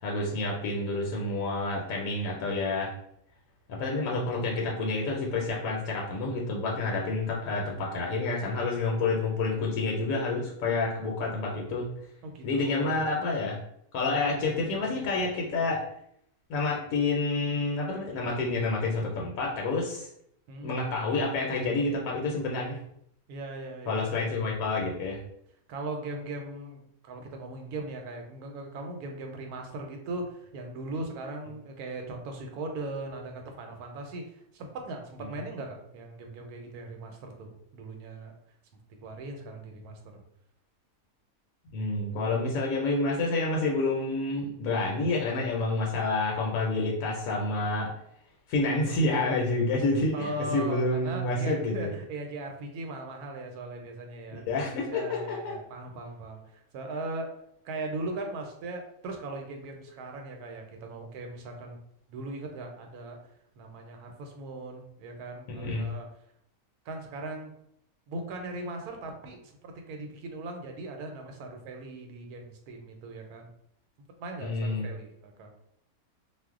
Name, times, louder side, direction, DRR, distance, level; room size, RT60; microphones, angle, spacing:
voice 1, 0.0-2.9 3.7-11.9 12.4-13.6 13.9-15.8 16.5-20.1 20.6-22.8 23.9-25.2 41.7-47.9 48.5-51.9 54.5-55.5 65.5-65.9 74.4-74.9, left 2 dB, 75° left, -2 dB, 1.0 m, -28 dB
voice 2, 12.2-13.0 20.5-20.8 23.3-24.0 25.7-38.3 39.0-40.2 50.1-54.4 54.8-57.3 57.6-61.8 62.1-63.3 63.6-66.1 66.8-67.5 68.1-73.5 74.2-75.5, right 2 dB, 90° right, 3 dB, 1.1 m, -39 dB
2.5 x 2.0 x 3.5 m, 0.73 s
omnidirectional pair, 1.6 m